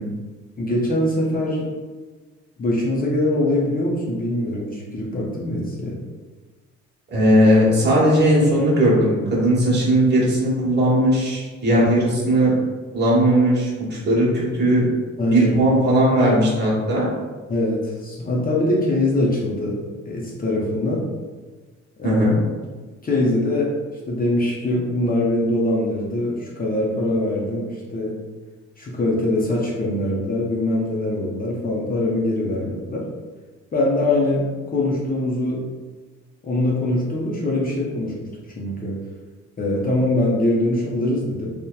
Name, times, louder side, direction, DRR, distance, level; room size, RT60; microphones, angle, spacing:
voice 1, 0.6-1.7 2.6-5.9 11.7-11.8 15.2-15.5 17.5-19.8 20.1-21.0 22.0-22.2 23.0-23.7 24.1-28.1 28.8-33.0 33.7-34.5 34.7-35.6 36.4-38.3 38.6-39.0 39.6-41.5, left 1 dB, 30° left, -4 dB, 0.5 m, -22 dB
voice 2, 7.1-12.5 12.9-14.9 15.3-17.1 22.0-22.3, right 1 dB, 35° right, -6 dB, 1.0 m, -18 dB
2.8 x 2.1 x 2.2 m, 1.3 s
cardioid pair, 90°, 30 cm